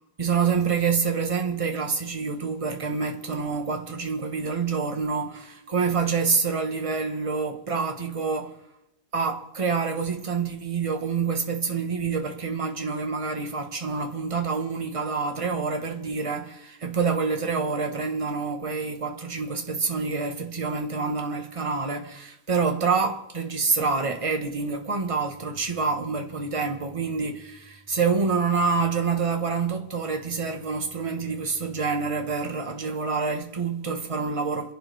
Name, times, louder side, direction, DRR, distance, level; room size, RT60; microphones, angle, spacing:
voice 1, 0.2-8.6 9.1-34.7, right 5 dB, 25° right, 1.4 m, -27 dB
28.0 x 11.0 x 3.5 m
omnidirectional pair, 1.4 m